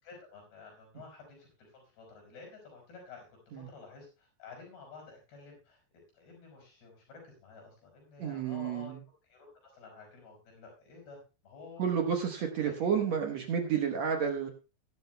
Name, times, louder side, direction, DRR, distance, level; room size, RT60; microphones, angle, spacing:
voice 1, 0.0-5.8 6.1-9.0 9.2-12.1 12.8-13.2 13.8-14.0, left 4 dB, 75° left, 1 dB, 7.3 m, -51 dB
voice 2, 8.2-9.0 11.8-14.5, right 7 dB, 70° right, 3 dB, 1.6 m, -31 dB
21.0 x 11.5 x 2.2 m, 0.31 s
omnidirectional pair, 4.7 m